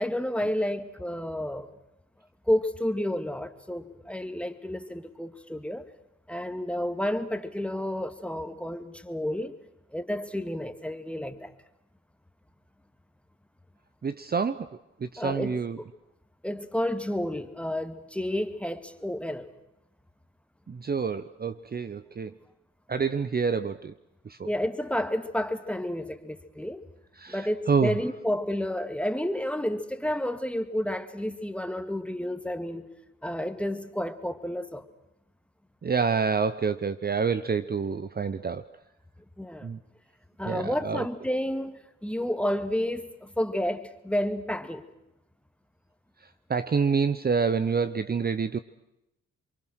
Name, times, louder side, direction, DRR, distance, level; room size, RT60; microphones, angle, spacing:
voice 1, 0.0-1.7 2.5-5.8 6.3-9.5 9.9-11.5 15.2-15.6 16.4-19.5 24.5-26.8 27.3-32.9 33.2-34.9 39.4-39.7 40.4-44.9, left 1 dB, 5° left, 2.1 m, -30 dB
voice 2, 14.0-14.7 15.0-15.8 20.7-22.3 22.9-23.9 24.3-24.5 27.2-28.0 35.8-38.6 39.6-39.8 40.5-41.1 46.5-48.6, right 5 dB, 35° right, 0.9 m, -27 dB
28.0 x 24.0 x 6.4 m
hypercardioid pair, 45°, 29 cm